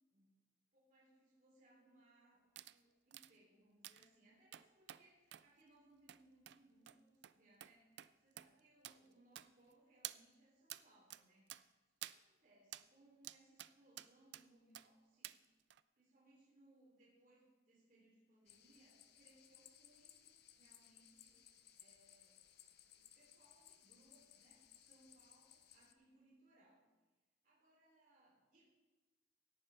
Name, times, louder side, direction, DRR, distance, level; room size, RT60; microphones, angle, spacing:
voice 1, 0.7-11.8 12.1-15.4 16.0-22.4 22.9-26.8 27.4-28.6, right 1 dB, 45° right, -5 dB, 3.1 m, -70 dB
sound 1, 2.6-2.8 3.1-3.3 3.8-4.1 4.5-5.0 5.3-5.5 6.1-6.2 6.5-6.6 6.9-7.0 7.2-7.3 7.6-7.7 8.0-8.1 8.4-8.5 8.8-9.0 9.4-9.7 10.0-10.2 10.7-10.8 11.1-11.2 11.5-11.6 12.0-12.2 12.7-12.9 13.2-13.7 14.0-14.4 14.7-14.9 15.2-15.4 15.7-15.8, right 14 dB, 65° right, 0.4 m, -51 dB
sound 2, 18.5-25.9, left 10 dB, 60° left, 0.7 m, -64 dB
17.5 x 9.9 x 3.3 m, 1.2 s
head